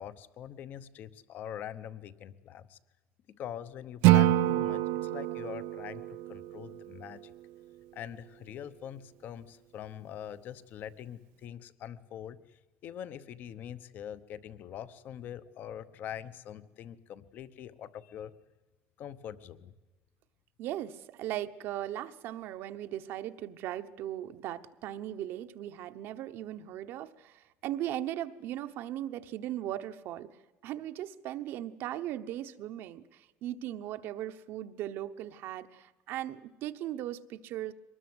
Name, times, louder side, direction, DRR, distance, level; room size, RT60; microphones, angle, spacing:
voice 1, 0.0-2.8 3.3-7.3 7.9-12.4 12.8-18.3 19.0-19.7, left 10 dB, 40° left, 14 dB, 1.0 m, -43 dB
Acoustic guitar / Strum, 4.0-7.2, right 15 dB, 70° right, 0.7 m, -26 dB
voice 2, 20.6-30.4 30.6-37.7, right 12 dB, 50° right, 9 dB, 1.0 m, -38 dB
23.5 x 20.0 x 8.0 m, 1.1 s
cardioid pair, 175°, 5 cm